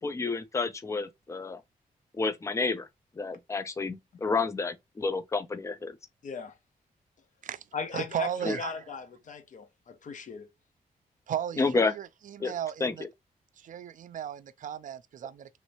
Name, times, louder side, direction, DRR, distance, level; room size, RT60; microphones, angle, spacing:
voice 1, 0.0-1.6 2.1-2.9 3.2-6.0 8.4-8.6 11.6-11.9 12.4-12.5 12.8-12.9, left 4 dB, 20° left, 0.4 m, -30 dB
voice 2, 6.2-6.6 7.7-8.3 8.6-10.5, left 5 dB, 55° left, 0.7 m, -38 dB
voice 3, 7.9-8.9 11.3-13.1 13.6-15.6, right 9 dB, 60° right, 0.4 m, -35 dB
3.1 x 2.6 x 3.0 m
wide cardioid pair, 110°, 15 cm